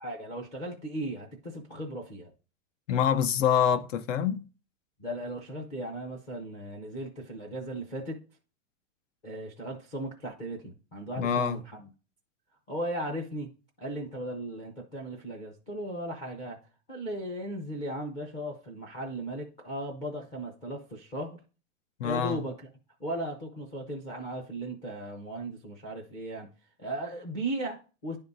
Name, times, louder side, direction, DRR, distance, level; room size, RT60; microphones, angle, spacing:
voice 1, 0.0-2.3 5.0-8.2 9.2-11.9 12.7-13.5 13.8-16.6 16.9-21.4 22.0-22.7 23.0-26.5 26.8-28.2, right 1 dB, 15° left, 0.4 m, -37 dB
voice 2, 2.9-4.4 11.2-11.6 22.0-22.4, left 8 dB, 85° left, 0.9 m, -26 dB
10.5 x 3.6 x 3.9 m
supercardioid pair, 175°, 37 cm